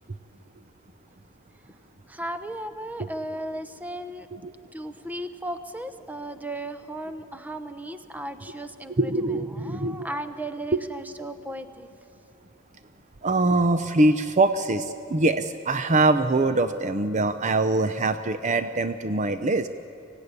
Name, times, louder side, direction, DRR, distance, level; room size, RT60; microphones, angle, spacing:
voice 1, 2.1-4.3 4.7-11.9, right 1 dB, 10° right, 9 dB, 0.9 m, -36 dB
voice 2, 9.0-10.1 13.2-19.7, right 2 dB, 35° right, 9 dB, 0.6 m, -23 dB
25.0 x 16.0 x 9.7 m, 2.6 s
head